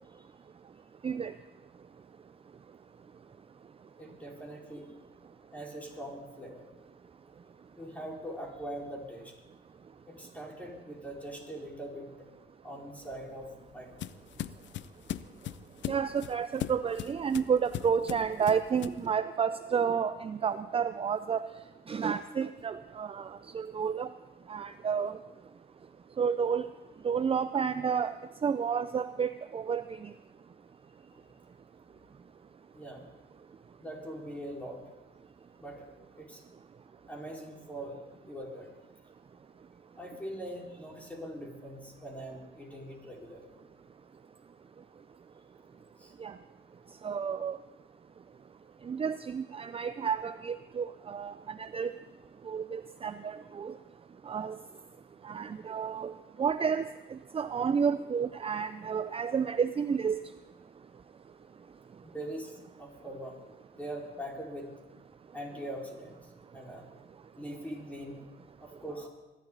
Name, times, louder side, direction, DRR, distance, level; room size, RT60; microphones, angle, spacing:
voice 1, 4.0-4.9 5.5-6.6 7.8-9.3 10.1-12.3 12.6-14.0 31.1-31.3 32.7-33.1 33.8-34.8 35.6-35.9 36.1-36.4 37.1-38.7 40.0-43.6 45.9-46.1 62.0-63.4 63.7-64.7 65.3-66.9 67.3-68.2 68.6-69.1, right 1 dB, 5° left, -3 dB, 4.8 m, -42 dB
sound 1, 13.0-19.1, left 11 dB, 70° left, 0.6 m, -40 dB
voice 2, 15.9-21.4 21.9-23.3 23.5-24.1 24.5-25.2 26.2-26.7 27.0-28.1 28.4-30.0 46.2-46.3 47.0-47.6 48.9-51.3 51.6-51.9 52.5-53.7 54.3-54.6 55.2-56.1 56.4-56.8 57.1-60.2, right 6 dB, 30° right, 12 dB, 0.5 m, -30 dB
23.5 x 11.5 x 4.0 m, 1.1 s
cardioid pair, 90°, 20 cm